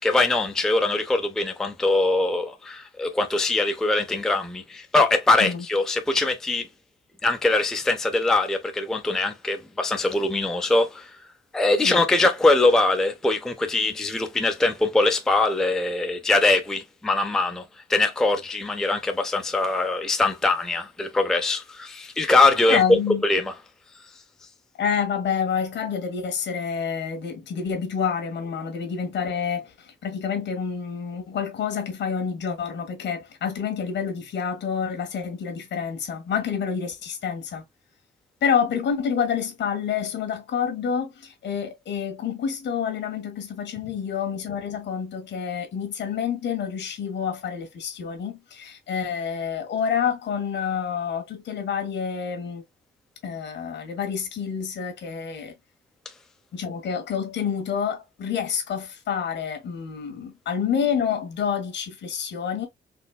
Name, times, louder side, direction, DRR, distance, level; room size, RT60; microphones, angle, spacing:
voice 1, 0.0-6.7 7.2-11.2 11.5-17.6 17.9-22.8 23.2-23.5, left 2 dB, 5° left, 0.4 m, -22 dB
voice 2, 22.7-23.2 24.8-37.6 38.4-52.6 53.2-55.5 56.5-62.7, left 7 dB, 70° left, 1.4 m, -28 dB
4.2 x 3.2 x 2.2 m
wide cardioid pair, 175°, 19 cm